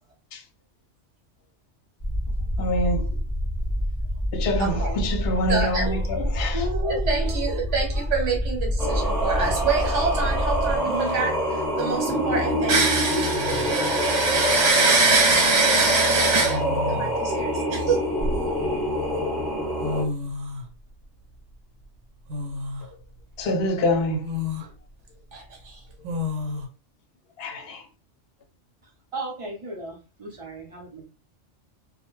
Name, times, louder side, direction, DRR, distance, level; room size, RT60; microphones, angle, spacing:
sound 1, 2.0-10.8, equal, 20° left, 0.6 m, -27 dB
voice 1, 2.6-3.0 4.3-6.6 23.4-24.3 27.4-27.8, left 1 dB, 65° left, 0.7 m, -25 dB
voice 2, 4.6-5.0 5.8-8.4 29.1-31.0, equal, 35° right, 0.6 m, -35 dB
voice 3, 5.5-6.1 6.3-6.5 6.8-16.6 16.9-18.1 25.3-25.8, right 3 dB, 75° right, 1.2 m, -24 dB
Singing, 8.8-20.0, equal, ahead, 0.9 m, -25 dB
sound 2, 10.8-11.3 12.9-13.0 13.3-13.8 15.1-15.3 16.4-17.2 17.8-18.9 19.5-19.6 19.8-20.7 22.3-22.9 23.4-23.5 24.2-24.7 26.0-26.7, left 2 dB, 90° right, 0.9 m, -31 dB
2.2 x 2.1 x 2.9 m
omnidirectional pair, 1.3 m